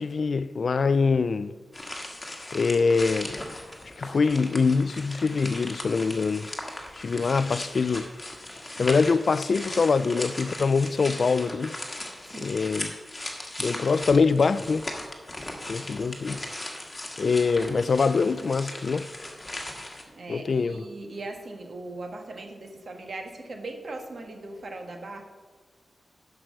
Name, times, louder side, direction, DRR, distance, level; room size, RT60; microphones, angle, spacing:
voice 1, 0.0-1.5 2.5-3.3 4.0-6.5 7.0-8.1 8.8-11.7 12.4-12.9 13.6-14.8 15.7-16.4 17.2-19.1 20.3-20.8, left 4 dB, 55° left, 0.3 m, -24 dB
sound 1, 1.7-20.0, left 1 dB, 20° left, 1.5 m, -38 dB
voice 2, 12.3-12.8 15.5-15.7 20.0-25.2, right 2 dB, 55° right, 1.5 m, -39 dB
11.0 x 6.0 x 6.3 m
wide cardioid pair, 140°, 0 cm